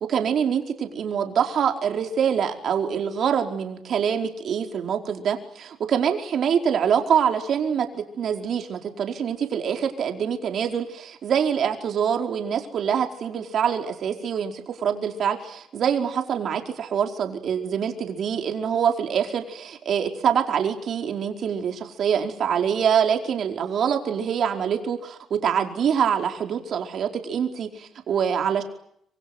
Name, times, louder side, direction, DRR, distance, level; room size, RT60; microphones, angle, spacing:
voice 1, 0.1-28.6, right 8 dB, 65° right, 4 dB, 4.9 m, -25 dB
26.0 x 26.0 x 8.2 m, 0.71 s
cardioid pair, 90°, 0 cm